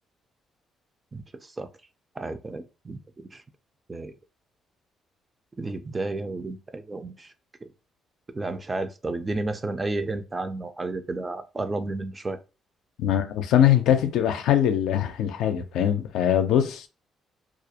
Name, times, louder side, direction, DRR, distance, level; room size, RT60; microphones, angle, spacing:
voice 1, 1.1-1.7 2.2-3.4 3.9-4.1 5.6-7.3 8.3-12.4, right 2 dB, 25° right, 0.3 m, -32 dB
voice 2, 13.0-16.9, left 10 dB, 85° left, 0.4 m, -22 dB
2.4 x 2.0 x 2.7 m
cardioid pair, 90°, 0 cm